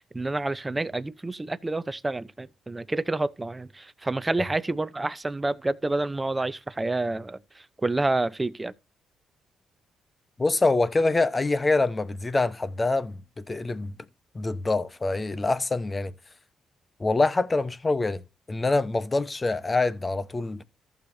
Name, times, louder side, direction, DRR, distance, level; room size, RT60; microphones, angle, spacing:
voice 1, 0.0-8.7, right 2 dB, 15° right, 0.7 m, -29 dB
voice 2, 10.4-14.0 14.3-16.1 17.0-18.2 18.5-20.6, left 3 dB, 25° left, 1.0 m, -25 dB
14.5 x 6.5 x 2.7 m
cardioid pair, 90°, 0 cm